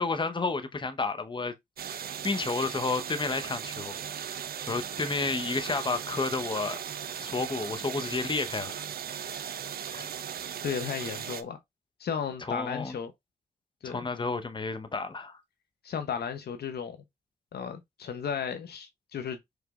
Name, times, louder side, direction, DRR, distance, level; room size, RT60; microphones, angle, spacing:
voice 1, 0.0-1.5 1.8-4.0 4.7-6.8 7.2-8.8 9.1-9.5 9.9-10.1 12.5-13.0 13.8-15.4, left 3 dB, 30° left, 0.8 m, -31 dB
sound 1, 1.8-11.4, right 8 dB, 60° right, 0.5 m, -37 dB
voice 2, 10.6-11.6 12.0-13.1 13.8-14.1 15.8-17.0 17.5-19.6, left 7 dB, 70° left, 0.8 m, -34 dB
4.8 x 3.3 x 2.4 m
supercardioid pair, 45°, 17 cm